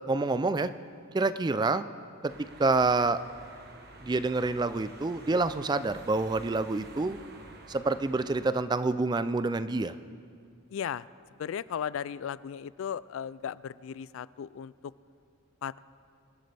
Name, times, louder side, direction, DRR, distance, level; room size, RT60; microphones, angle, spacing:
voice 1, 0.1-0.7 1.1-1.9 2.2-3.2 4.0-7.2 7.7-9.9, right 3 dB, 20° right, 13 dB, 0.3 m, -27 dB
sound 1, 2.3-8.5, right 2 dB, 50° right, 1.2 m, -50 dB
voice 2, 10.7-11.1 11.4-14.7 15.6-15.8, left 8 dB, 75° left, 19 dB, 0.3 m, -36 dB
25.0 x 11.5 x 3.4 m, 2.2 s
head